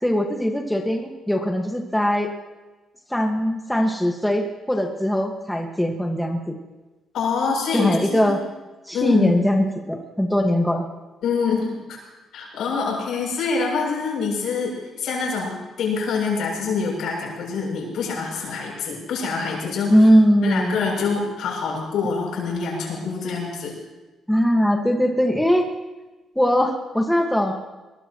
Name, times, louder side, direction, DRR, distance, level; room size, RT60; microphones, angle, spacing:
voice 1, 0.0-2.3 3.1-6.6 7.7-8.4 8.9-10.8 19.9-20.8 24.3-25.7 26.4-27.5, equal, 5° left, 2 dB, 1.8 m, -20 dB
voice 2, 7.1-8.4 8.9-9.3 11.2-12.0 12.3-20.1 20.4-23.8, left 5 dB, 75° left, -2 dB, 7.8 m, -25 dB
22.0 x 21.0 x 3.1 m, 1.1 s
cardioid pair, 90°, 0 cm